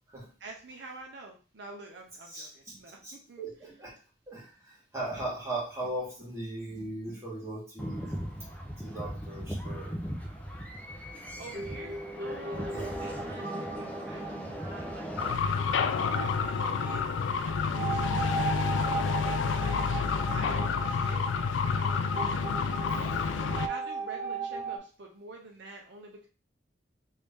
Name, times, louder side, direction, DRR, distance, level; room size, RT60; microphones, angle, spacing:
voice 1, 0.4-3.4 11.4-17.0 17.4-21.2 21.8-22.4 23.0-26.3, right 2 dB, 65° right, 1 dB, 0.6 m, -47 dB
voice 2, 2.2-3.9 4.3-8.3 8.8-9.9 12.7-12.9, right 2 dB, 15° right, -5 dB, 1.5 m, -38 dB
sound 1, 7.8-15.3, equal, 10° left, 0.5 m, -38 dB
sound 2, 11.5-24.8, right 4 dB, 35° right, 1.3 m, -38 dB
sound 3, 15.2-23.7, left 5 dB, 80° left, 0.3 m, -29 dB
3.2 x 2.7 x 3.4 m, 0.37 s
head